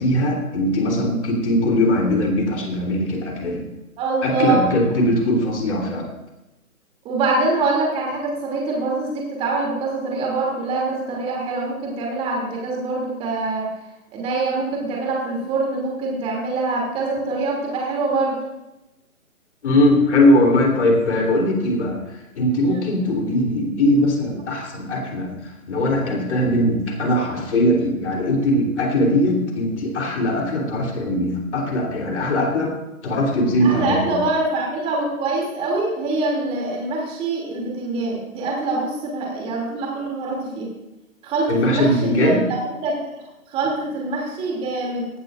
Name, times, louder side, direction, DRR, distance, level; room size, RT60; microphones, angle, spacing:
voice 1, 0.0-3.7 4.2-6.1 19.6-32.7 33.0-34.2 41.5-42.4, left 1 dB, 55° left, 1 dB, 3.5 m, -20 dB
voice 2, 4.0-4.6 7.0-13.7 14.1-18.4 22.6-22.9 33.6-40.7 41.2-42.3 42.8-43.0 43.5-45.1, right 3 dB, 15° right, -2 dB, 2.8 m, -24 dB
18.0 x 12.5 x 2.5 m, 0.98 s
figure-of-eight pair, 150°, 43 cm